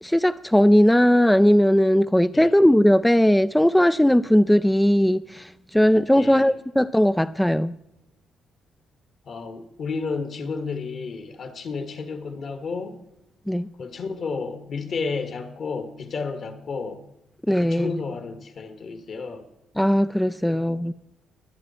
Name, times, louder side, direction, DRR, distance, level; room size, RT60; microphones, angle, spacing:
voice 1, 0.0-7.7 13.5-13.7 17.5-17.9 19.8-20.9, equal, 5° left, 0.4 m, -18 dB
voice 2, 6.2-6.5 9.2-13.0 13.8-17.0 17.6-19.4 20.4-20.8, left 4 dB, 55° left, 2.0 m, -32 dB
22.5 x 8.6 x 4.4 m
cardioid pair, 90°, 0 cm